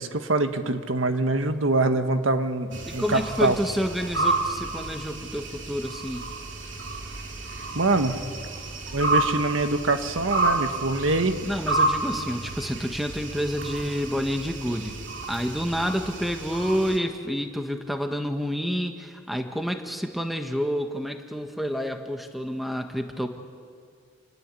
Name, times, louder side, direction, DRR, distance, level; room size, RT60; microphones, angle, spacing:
voice 1, 0.0-3.6 7.7-8.2 8.9-11.4, right 2 dB, 85° right, 7 dB, 1.5 m, -24 dB
sound 1, 2.7-17.0, right 2 dB, 65° right, 2.9 m, -30 dB
voice 2, 2.9-6.3 11.4-15.0 15.3-23.3, equal, ahead, 5 dB, 1.6 m, -29 dB
29.0 x 20.0 x 8.4 m, 2.1 s
head